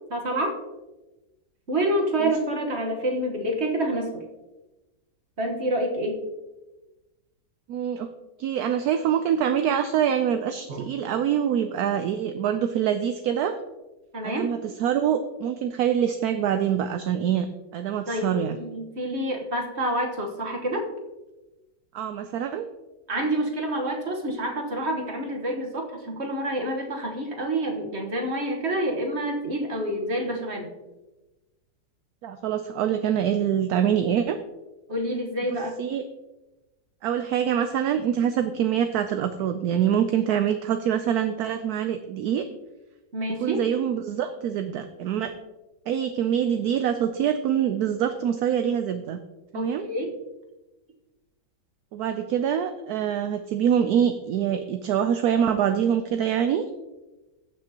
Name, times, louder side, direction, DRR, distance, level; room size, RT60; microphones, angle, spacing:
voice 1, 0.1-0.6 1.7-4.2 5.4-6.2 10.7-10.8 14.1-14.5 18.1-20.8 23.1-30.7 34.9-35.8 43.1-43.6 49.5-50.1, right 1 dB, 40° right, 1 dB, 1.5 m, -28 dB
voice 2, 7.7-8.1 8.4-13.6 14.2-17.5 17.7-18.6 21.9-22.7 32.2-34.4 35.8-36.0 37.0-42.4 43.4-45.3 45.9-49.2 49.5-49.9 51.9-56.6, right 9 dB, 70° right, 8 dB, 1.0 m, -25 dB
15.5 x 6.2 x 2.9 m, 1.1 s
omnidirectional pair, 1.8 m